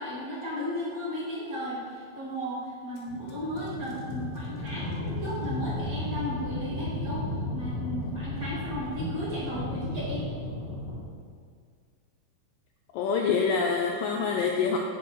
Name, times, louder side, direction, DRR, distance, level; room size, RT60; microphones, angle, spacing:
voice 1, 0.0-7.2 7.5-10.3, left 1 dB, 35° right, -9 dB, 1.5 m, -35 dB
sound 1, 3.0-11.0, left 1 dB, 70° left, 2.6 m, -34 dB
voice 2, 12.9-14.8, left 5 dB, 85° left, 1 dB, 1.9 m, -26 dB
7.9 x 7.0 x 3.2 m, 2.1 s
omnidirectional pair, 4.4 m